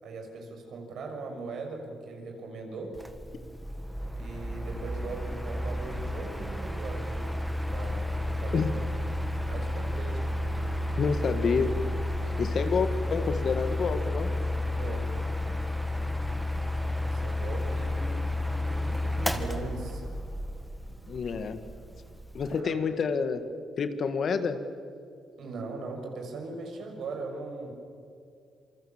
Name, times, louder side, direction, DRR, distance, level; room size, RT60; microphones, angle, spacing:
voice 1, 0.0-2.9 4.1-7.3 7.7-8.7 9.5-10.2 12.2-12.6 14.6-15.2 17.0-20.0 22.5-22.8 25.4-27.7, right 3 dB, 70° right, 3 dB, 6.2 m, -40 dB
Mechanical fan, 2.9-22.6, left 1 dB, ahead, 2.0 m, -32 dB
voice 2, 11.0-11.8 12.4-14.3 21.1-21.6 22.3-23.5 23.8-24.6, left 5 dB, 50° left, 9 dB, 1.8 m, -28 dB
27.5 x 24.0 x 7.4 m, 2.4 s
cardioid pair, 90°, 0 cm